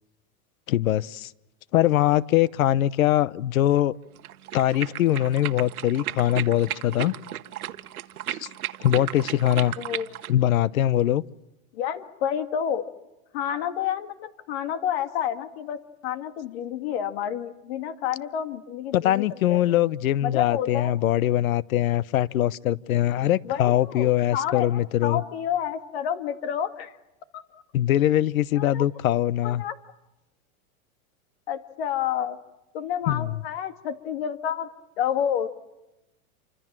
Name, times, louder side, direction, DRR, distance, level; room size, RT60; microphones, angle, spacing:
voice 1, 0.7-1.3 1.7-4.0 4.5-7.1 8.3-8.5 8.8-9.7 10.3-11.2 18.9-25.2 27.7-29.6 33.1-33.4, left 13 dB, 75° left, 1.0 m, -22 dB
sound 1, 4.2-10.3, right 13 dB, 85° right, 1.3 m, -35 dB
voice 2, 9.8-10.1 11.7-12.8 13.3-19.2 19.5-19.6 20.2-20.9 23.5-24.7 25.0-26.9 27.3-27.6 28.6-28.8 29.4-29.7 31.5-32.4 32.7-34.7 35.0-35.5, left 9 dB, 45° left, 2.1 m, -29 dB
28.0 x 25.5 x 7.5 m
supercardioid pair, 165°, 43 cm